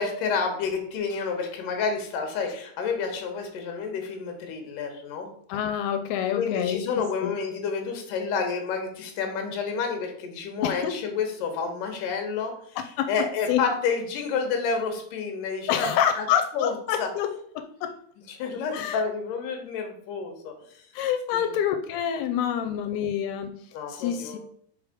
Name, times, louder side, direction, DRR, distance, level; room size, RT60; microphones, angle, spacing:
voice 1, 0.0-5.3 6.3-12.5 13.1-15.9 16.2-16.3 16.5-17.1 18.3-20.5 21.3-21.5 22.6-23.0 23.7-24.4, left 5 dB, 70° left, 4 dB, 2.6 m, -29 dB
voice 2, 5.5-7.3 10.6-10.9 12.8-13.1 13.5-13.6 15.7-17.3 17.6-17.9 18.7-19.0 20.9-23.5 23.9-24.4, left 9 dB, 85° left, 7 dB, 2.5 m, -27 dB
5.1 x 4.9 x 4.9 m, 0.64 s
omnidirectional pair, 4.4 m